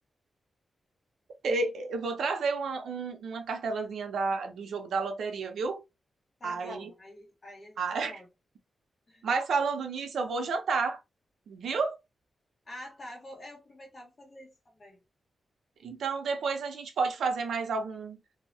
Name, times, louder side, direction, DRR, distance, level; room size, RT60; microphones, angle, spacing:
voice 1, 1.4-5.8 6.4-6.9 7.8-8.2 9.2-11.0 11.5-12.0 15.8-18.2, right 4 dB, 85° right, 0.6 m, -31 dB
voice 2, 6.4-8.3 9.1-9.2 12.6-15.0, left 1 dB, 35° left, 1.3 m, -47 dB
2.6 x 2.1 x 2.7 m
wide cardioid pair, 130°, 0 cm